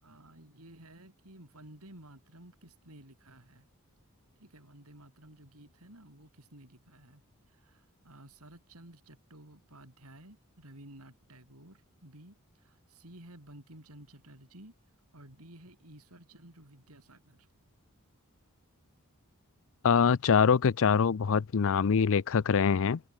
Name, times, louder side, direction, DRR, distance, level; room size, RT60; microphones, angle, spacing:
voice 1, 0.0-3.7 4.4-14.7 15.1-17.5, right 1 dB, 80° right, 6.2 m, -54 dB
voice 2, 19.8-23.0, left 6 dB, 65° left, 0.5 m, -24 dB
head